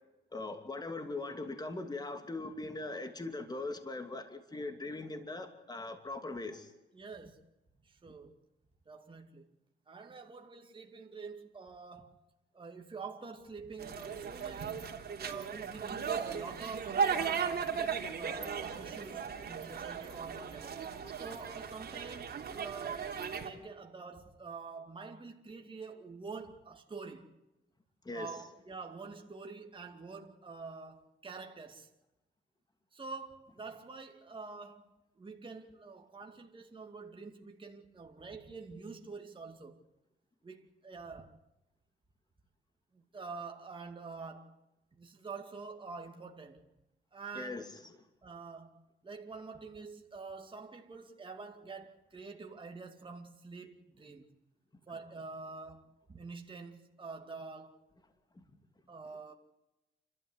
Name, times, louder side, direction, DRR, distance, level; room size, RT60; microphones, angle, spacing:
voice 1, 0.3-6.7 28.0-28.4 47.3-47.8 58.3-58.4, left 2 dB, 20° left, 2.8 m, -40 dB
voice 2, 6.9-7.4 7.8-8.3 8.9-9.5 9.9-12.2 12.5-17.8 18.1-20.9 21.2-27.3 28.1-31.9 32.9-39.8 40.4-41.4 42.9-44.6 45.0-46.7 47.1-47.6 48.2-54.3 54.9-57.8 58.9-59.3, right 4 dB, 25° right, 2.3 m, -47 dB
sound 1, 13.8-23.5, right 6 dB, 50° right, 3.3 m, -37 dB
29.5 x 13.0 x 8.1 m
cardioid pair, 90°, 20 cm